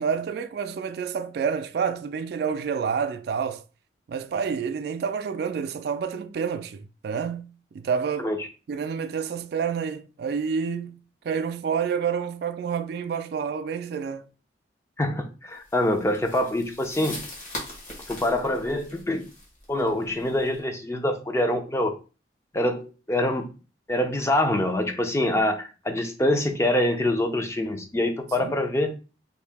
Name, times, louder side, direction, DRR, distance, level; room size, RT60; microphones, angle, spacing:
voice 1, 0.0-3.6 4.1-8.3 8.7-11.0 11.2-14.3 28.4-28.5, right 6 dB, 60° right, 0.3 m, -28 dB
voice 2, 15.0-17.2 18.1-19.2 19.7-21.9 22.5-23.5 23.9-28.9, left 1 dB, 15° left, 0.4 m, -25 dB
sound 1, 15.7-20.6, left 1 dB, 45° left, 1.2 m, -41 dB
2.7 x 2.7 x 3.4 m
head